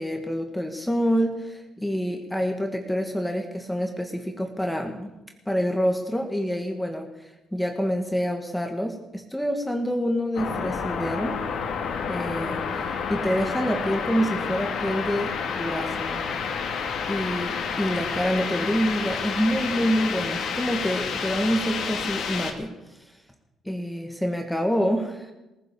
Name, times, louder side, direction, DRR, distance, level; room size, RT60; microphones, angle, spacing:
voice 1, 0.0-5.1 5.5-7.1 7.5-11.4 12.1-16.2 17.1-22.7 23.7-25.3, equal, 5° left, 3 dB, 2.1 m, -27 dB
sound 1, 10.3-22.5, left 6 dB, 70° left, 2.4 m, -29 dB
18.5 x 10.5 x 7.0 m, 1.0 s
cardioid pair, 80°, 0 cm